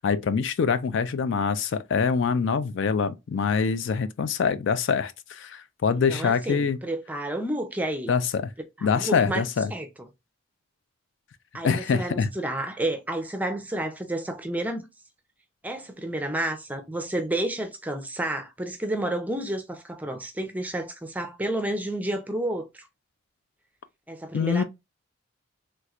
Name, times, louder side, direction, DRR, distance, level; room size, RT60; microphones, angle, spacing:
voice 1, 0.0-6.8 8.1-8.5 8.8-9.7 11.6-12.3 24.3-24.6, left 6 dB, 60° left, 0.3 m, -25 dB
voice 2, 6.1-8.2 8.8-9.9 11.5-14.9 15.6-22.9 24.1-24.6, right 1 dB, 10° right, 0.5 m, -30 dB
3.3 x 3.0 x 2.4 m
head